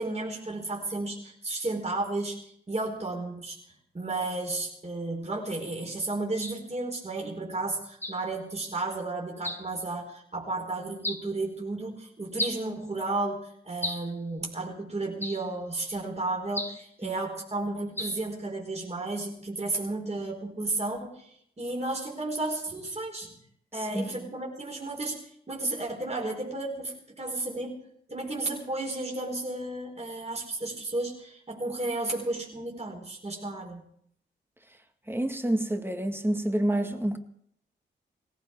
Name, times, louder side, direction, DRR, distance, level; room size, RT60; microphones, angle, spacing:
voice 1, 0.0-3.6 3.9-23.4 23.7-27.8 28.1-33.8, right 2 dB, 35° right, 4.6 m, -33 dB
sound 1, 6.4-6.6 8.0-8.3 9.4-9.7 11.0-11.3 12.4-12.7 13.8-14.2 15.2-15.5 16.5-16.9 18.0-18.3, left 1 dB, 10° left, 1.6 m, -34 dB
voice 2, 23.9-24.3 35.1-37.2, right 1 dB, 10° right, 1.9 m, -28 dB
18.5 x 16.0 x 4.6 m
cardioid pair, 55°, 20 cm